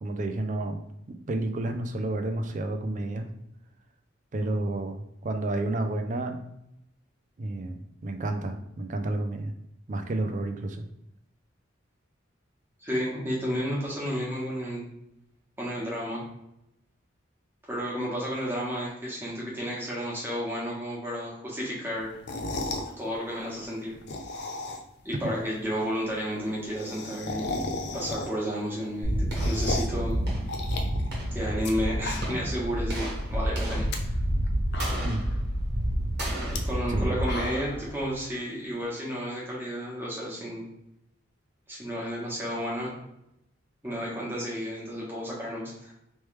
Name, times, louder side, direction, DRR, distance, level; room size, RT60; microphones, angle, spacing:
voice 1, 0.0-0.8 1.3-3.3 4.3-6.4 7.4-9.5 9.9-10.8 25.2-25.3 35.0-35.3 36.9-37.1, right 2 dB, 40° right, 6 dB, 0.4 m, -30 dB
voice 2, 12.8-14.9 15.6-16.2 17.6-22.1 23.0-23.9 25.0-27.5 27.9-30.2 31.3-34.1 36.5-40.6 41.7-42.9 43.8-45.9, equal, 10° right, -6 dB, 1.2 m, -32 dB
sound 1, 22.1-22.9 23.9-25.0 25.4-25.5 25.7-25.8 26.0-26.1 26.3-28.5 28.9-30.0 30.5-31.7 32.0-32.6 32.9-33.0 33.7-34.0 34.4-34.5 34.7-35.4 36.4-36.6 37.0-37.8, left 2 dB, 60° left, 0.5 m, -35 dB
sound 2, 29.0-38.2, equal, 55° right, 1.2 m, -29 dB
3.2 x 3.1 x 3.2 m, 0.81 s
head